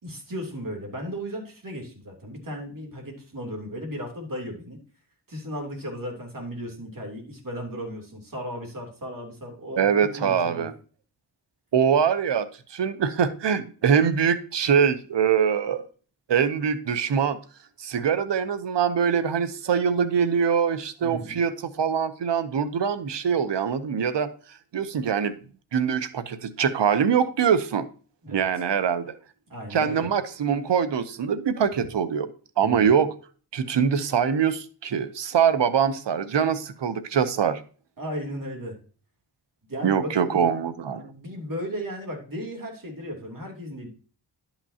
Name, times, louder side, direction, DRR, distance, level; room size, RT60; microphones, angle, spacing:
voice 1, 0.0-4.8 5.3-10.7 21.0-21.4 28.2-28.5 29.5-30.1 32.6-33.0 38.0-38.8 39.7-40.6 40.9-43.9, equal, 50° right, 2 dB, 3.0 m, -35 dB
voice 2, 9.8-10.7 11.7-15.9 16.3-17.4 17.8-24.3 24.7-25.3 25.7-27.8 28.3-29.1 29.7-32.3 32.6-33.1 33.5-37.6 39.8-41.1, right 7 dB, 75° right, 12 dB, 0.8 m, -23 dB
11.5 x 5.9 x 2.8 m, 0.39 s
cardioid pair, 60°, 43 cm